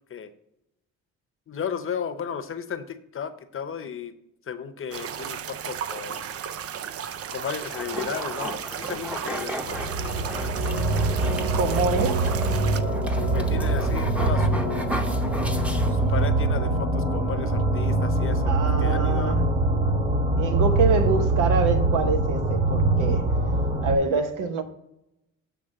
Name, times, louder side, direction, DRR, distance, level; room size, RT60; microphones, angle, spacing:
voice 1, 1.5-4.1 4.5-6.3 7.3-9.8 13.3-15.1 15.9-18.5 18.8-19.4, left 7 dB, 45° left, 0.8 m, -34 dB
sound 1, 4.9-12.8, right 8 dB, 50° right, 0.5 m, -34 dB
sound 2, 7.7-16.3, equal, 5° right, 0.8 m, -36 dB
sound 3, 9.6-24.0, right 2 dB, 30° right, 1.4 m, -23 dB
voice 2, 11.5-12.2 18.5-19.4 20.4-23.3 23.8-24.6, right 4 dB, 85° right, 1.0 m, -25 dB
8.0 x 3.3 x 6.4 m
cardioid pair, 90°, 30 cm